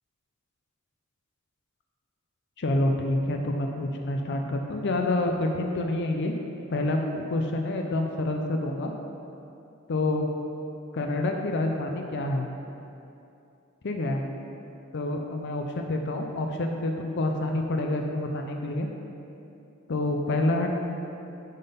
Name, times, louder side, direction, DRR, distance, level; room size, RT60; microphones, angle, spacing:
voice 1, 2.6-6.3 6.7-8.9 9.9-10.3 10.9-12.5 13.8-14.2 14.9-18.9 19.9-20.7, left 2 dB, 55° left, 3 dB, 0.6 m, -27 dB
9.2 x 3.8 x 5.5 m, 2.7 s
head